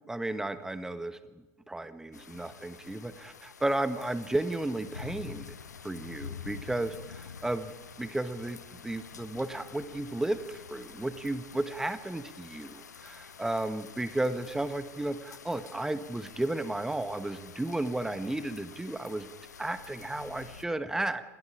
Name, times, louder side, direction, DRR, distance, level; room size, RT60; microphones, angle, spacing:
voice 1, 0.1-5.5 5.8-7.7 8.0-19.3 19.6-21.2, right 2 dB, 5° right, 12 dB, 1.3 m, -33 dB
sound 1, 2.1-20.7, left 6 dB, 75° left, 1.0 m, -48 dB
28.5 x 21.5 x 4.9 m, 1.1 s
figure-of-eight pair, 80°, 9 cm